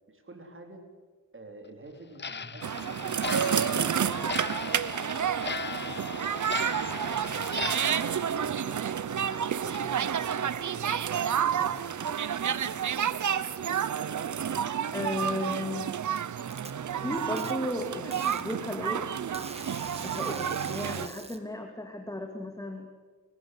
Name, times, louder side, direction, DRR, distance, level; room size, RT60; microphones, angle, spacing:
voice 1, 0.1-0.8 1.3-4.9 5.3-10.9 11.3-13.4 20.2-20.4, right 2 dB, 40° right, 4 dB, 4.3 m, -49 dB
Clock, 2.2-9.4 9.7-9.8 10.3-10.4 10.9-11.0 11.5-11.6 12.1-12.2 12.6-12.8, left 5 dB, 35° left, 0.9 m, -38 dB
sound 1, 2.6-21.1, right 8 dB, 65° right, 1.0 m, -30 dB
voice 2, 14.9-15.9 17.0-19.1 20.0-22.9, left 1 dB, 10° left, 4 dB, 2.5 m, -35 dB
Packing tape duct tape, 15.7-16.7 17.4-17.5 18.1-18.5 19.3-21.4, right 2 dB, 20° right, 2.5 m, -44 dB
30.0 x 15.5 x 8.1 m, 1.5 s
cardioid pair, 85°, 32 cm